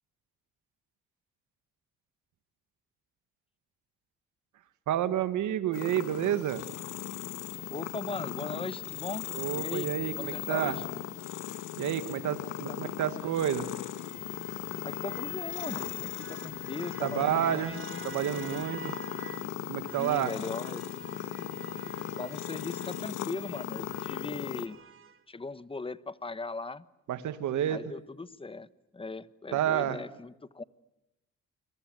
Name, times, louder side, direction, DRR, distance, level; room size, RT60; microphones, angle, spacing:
voice 1, 4.9-6.6 9.3-10.8 11.8-13.7 17.0-17.7 18.0-19.0 19.7-20.3 27.1-27.8 29.5-30.0, right 10 dB, 75° right, 11 dB, 2.0 m, -30 dB
sound 1, 5.7-24.7, left 13 dB, 90° left, 1.7 m, -38 dB
voice 2, 7.7-9.3 9.5-9.9 10.2-10.8 12.7-13.4 14.8-18.0 20.0-20.8 22.2-24.8 25.3-26.8 27.7-30.6, left 3 dB, 20° left, 15 dB, 1.1 m, -39 dB
sound 2, 12.9-19.5 19.9-25.2, right 7 dB, 45° right, 1.8 m, -49 dB
28.0 x 22.5 x 9.4 m, 0.91 s
cardioid pair, 90°, 30 cm